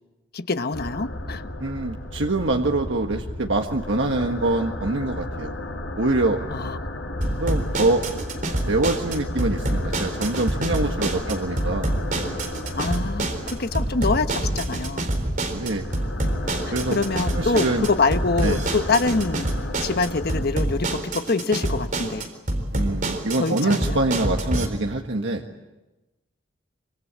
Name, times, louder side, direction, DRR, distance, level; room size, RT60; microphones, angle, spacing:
voice 1, 0.3-1.5 6.5-7.0 12.8-15.0 16.9-19.5 19.8-22.3 23.4-24.0, left 3 dB, 55° left, 10 dB, 1.1 m, -25 dB
sound 1, 0.7-20.5, left 1 dB, 90° left, 4.5 m, -33 dB
voice 2, 1.6-5.5 6.0-6.4 7.4-8.0 8.7-11.9 12.2-12.3 15.5-15.9 16.7-17.0 17.3-17.9 18.4-18.6 22.7-25.4, right 2 dB, 85° right, 2 dB, 1.7 m, -24 dB
sound 2, 7.2-24.7, right 1 dB, 45° right, 4.0 m, -27 dB
26.5 x 25.5 x 8.5 m, 1.1 s
head